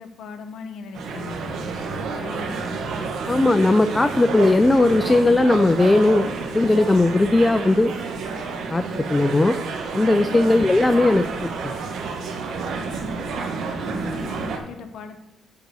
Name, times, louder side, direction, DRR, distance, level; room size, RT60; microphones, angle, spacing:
voice 1, 0.0-1.5 2.2-2.8 13.8-15.2, left 4 dB, 70° left, 5 dB, 1.0 m, -38 dB
sound 1, 0.9-14.6, right 4 dB, 75° right, 1.2 m, -30 dB
voice 2, 3.3-7.9 8.7-9.6 9.9-11.7, left 2 dB, 15° left, 9 dB, 0.4 m, -18 dB
9.5 x 4.0 x 6.7 m, 0.94 s
cardioid pair, 90°, 0 cm